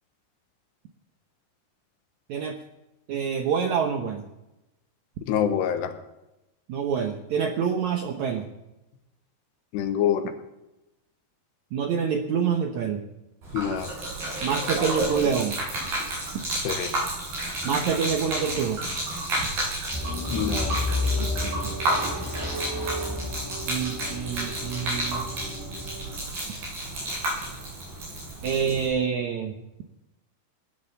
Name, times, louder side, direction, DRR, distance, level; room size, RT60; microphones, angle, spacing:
voice 1, 3.1-4.3 6.7-8.5 11.7-13.0 14.4-15.6 17.6-18.8 21.2-21.7 23.7-25.3 28.4-29.5, right 7 dB, 75° right, 4 dB, 1.7 m, -27 dB
voice 2, 5.3-5.9 9.7-10.3 13.5-13.9 16.6-16.9 20.3-20.7, left 9 dB, 90° left, 8 dB, 3.3 m, -25 dB
Gurgling / Liquid, 13.4-28.9, right 1 dB, 60° right, 9.3 m, -31 dB
sound 1, 19.9-26.2, left 2 dB, 5° right, 2.3 m, -32 dB
18.5 x 10.5 x 7.0 m, 0.96 s
omnidirectional pair, 4.7 m